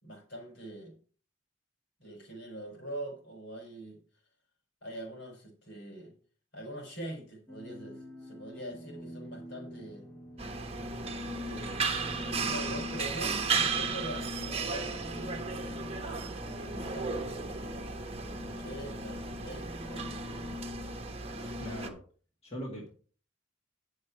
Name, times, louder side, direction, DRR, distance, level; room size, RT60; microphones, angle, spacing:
voice 1, 0.0-1.0 2.0-4.0 4.8-6.1 6.5-10.1 11.4-15.5 16.0-17.6 18.2-20.1 21.2-21.6, right 1 dB, 65° left, 1 dB, 4.8 m, -44 dB
sound 1, 7.5-20.6, right 1 dB, 10° left, 1.8 m, -48 dB
sound 2, 10.4-21.9, right 3 dB, 30° right, 1.2 m, -35 dB
voice 2, 21.5-22.0 22.4-22.9, equal, 30° left, -2 dB, 2.1 m, -40 dB
10.0 x 6.6 x 4.8 m, 0.41 s
head